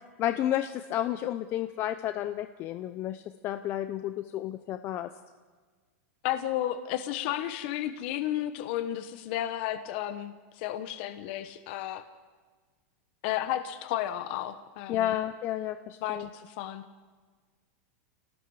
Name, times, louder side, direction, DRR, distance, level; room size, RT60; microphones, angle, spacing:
voice 1, 0.2-5.1 14.9-16.3, left 12 dB, 30° left, 10 dB, 0.7 m, -31 dB
voice 2, 6.2-12.0 13.2-15.2 16.0-16.8, left 12 dB, 45° left, 10 dB, 1.1 m, -33 dB
29.0 x 18.5 x 4.9 m, 1.4 s
supercardioid pair, 165°, 8 cm